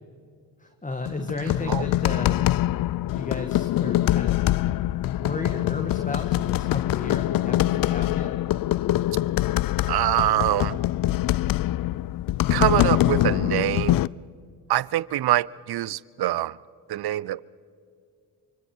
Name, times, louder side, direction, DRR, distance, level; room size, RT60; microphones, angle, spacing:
voice 1, 0.6-2.4 3.1-4.5 5.1-8.4, left 2 dB, 15° left, 6 dB, 1.6 m, -34 dB
sound 1, 1.1-14.1, left 15 dB, 50° left, 0.5 m, -24 dB
voice 2, 9.9-10.8 12.5-14.0 14.7-16.6 16.9-17.4, right 14 dB, 55° right, 22 dB, 0.7 m, -24 dB
29.0 x 25.0 x 4.5 m, 2.3 s
supercardioid pair, 55°, 47 cm